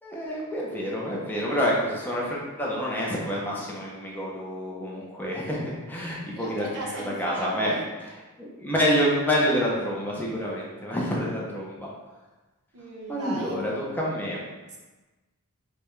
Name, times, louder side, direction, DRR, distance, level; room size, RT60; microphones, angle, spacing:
voice 1, 0.0-7.8 8.4-11.9 13.1-14.4, equal, 10° left, -4 dB, 0.7 m, -28 dB
voice 2, 6.4-7.9 12.7-13.6 14.7-14.8, right 1 dB, 85° right, -2 dB, 0.9 m, -37 dB
5.2 x 2.2 x 3.1 m, 1.2 s
head